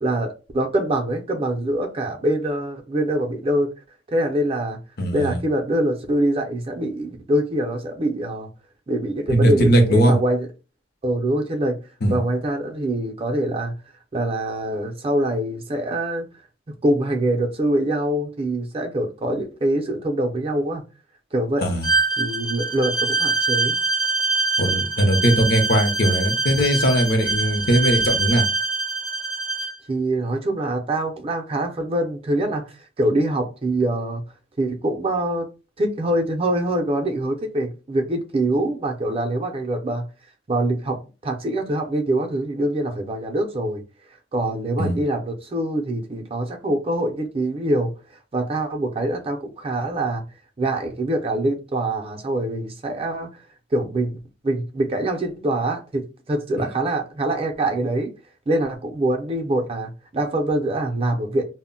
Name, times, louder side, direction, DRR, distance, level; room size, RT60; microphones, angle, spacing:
voice 1, 0.0-3.7 4.1-4.8 5.1-8.5 8.9-10.5 11.0-11.8 12.1-13.7 14.1-16.3 16.8-20.8 21.3-21.6 22.2-23.8 29.9-32.6 33.0-34.2 34.6-35.5 35.8-40.0 40.5-43.8 44.3-47.9 48.3-50.2 50.6-53.3 53.7-58.1 58.5-61.4, right 1 dB, 35° right, 0.5 m, -24 dB
voice 2, 5.0-5.4 9.3-10.2 12.0-12.2 21.6-21.9 24.6-28.4 44.8-45.0 56.6-56.7, right 1 dB, 60° left, 0.7 m, -19 dB
Bowed string instrument, 21.8-29.7, right 3 dB, 20° left, 0.5 m, -24 dB
2.1 x 2.1 x 3.8 m
head